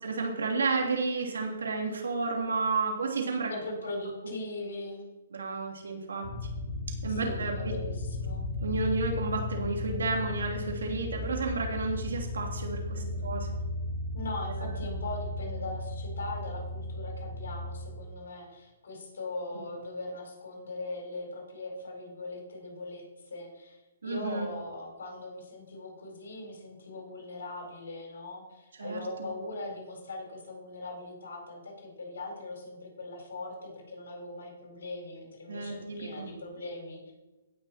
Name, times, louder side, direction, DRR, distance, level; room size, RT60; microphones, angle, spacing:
voice 1, 0.0-3.5 4.2-4.3 5.3-6.3 7.0-7.7 8.6-13.5 14.6-14.7 24.0-24.5 28.8-29.3 35.5-36.3, right 3 dB, 85° right, 1 dB, 2.8 m, -31 dB
voice 2, 3.5-5.1 7.1-8.4 13.0-13.3 14.1-37.1, left 2 dB, 75° left, 0 dB, 4.3 m, -40 dB
sound 1, 6.2-17.9, left 2 dB, 50° left, 2.2 m, -35 dB
17.0 x 5.8 x 4.4 m, 1.1 s
hypercardioid pair, 150°, 0 cm